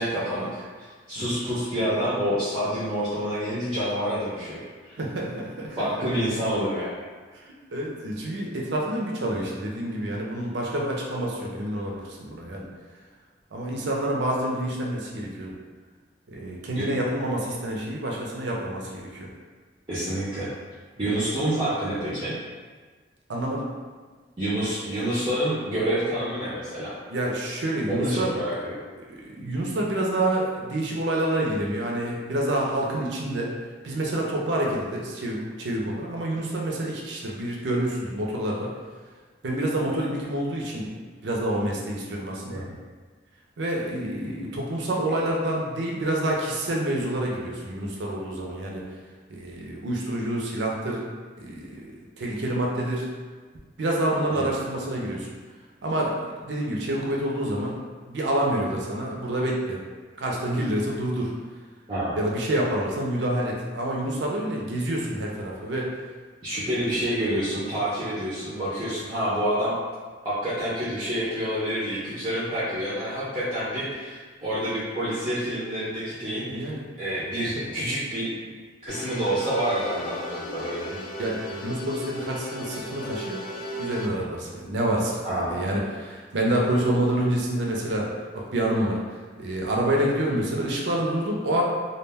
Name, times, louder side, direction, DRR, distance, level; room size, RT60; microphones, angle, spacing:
voice 1, 0.0-5.0 5.8-7.0 16.7-16.9 19.9-20.5 21.0-22.4 24.4-26.9 27.9-28.7 42.5-42.7 54.3-54.5 61.9-62.2 66.4-69.7 70.2-78.3 78.8-80.9 85.2-85.7, equal, 25° right, -10 dB, 0.5 m, -28 dB
voice 2, 5.0-5.9 7.3-7.4 7.7-12.7 13.5-15.5 16.3-19.3 21.0-21.3 23.3-23.7 27.1-28.3 29.1-33.5 33.8-38.7 39.4-40.9 41.2-42.6 43.6-48.8 49.3-51.1 51.4-53.1 53.8-55.3 55.8-57.8 58.1-59.8 60.2-61.3 62.2-65.9 76.5-76.8 77.5-77.7 80.9-83.4 83.8-89.0 89.4-91.6, right 1 dB, 75° right, -2 dB, 0.5 m, -28 dB
sound 1, 78.9-84.1, equal, 50° left, 0.3 m, -36 dB
2.3 x 2.1 x 3.4 m, 1.4 s
head